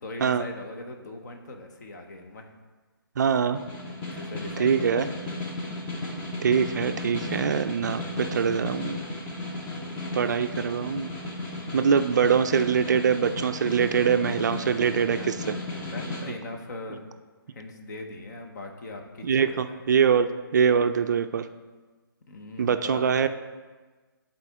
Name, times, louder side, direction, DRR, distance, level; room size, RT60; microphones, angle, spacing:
voice 1, 0.0-2.5 4.1-5.0 14.6-15.3 15.8-17.0 17.5-19.8 22.3-23.3, left 2 dB, 50° left, 4 dB, 1.0 m, -40 dB
voice 2, 3.2-3.6 4.6-5.1 6.4-9.0 10.1-11.1 11.7-15.5 19.2-21.5 22.6-23.3, right 7 dB, 50° right, 9 dB, 0.4 m, -23 dB
Snare drum, 3.5-16.3, left 2 dB, 15° left, 0.7 m, -35 dB
11.0 x 4.2 x 3.6 m, 1.3 s
hypercardioid pair, 155°, 12 cm